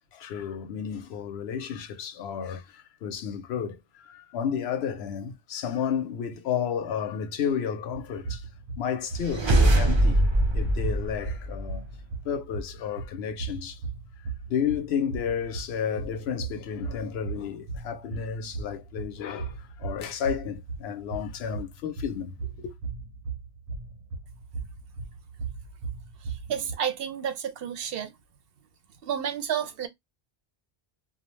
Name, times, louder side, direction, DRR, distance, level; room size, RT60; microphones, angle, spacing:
voice 1, 0.1-8.5 8.8-10.2 10.5-11.9 12.2-13.8 14.5-22.7, left 7 dB, 80° left, 0.8 m, -32 dB
sound 1, 7.9-26.7, right 4 dB, 90° right, 1.0 m, -38 dB
sound 2, 9.1-11.9, right 1 dB, 40° right, 0.4 m, -23 dB
voice 2, 26.2-28.1 29.0-29.9, right 8 dB, 65° right, 0.7 m, -31 dB
2.4 x 2.1 x 3.0 m
omnidirectional pair, 1.1 m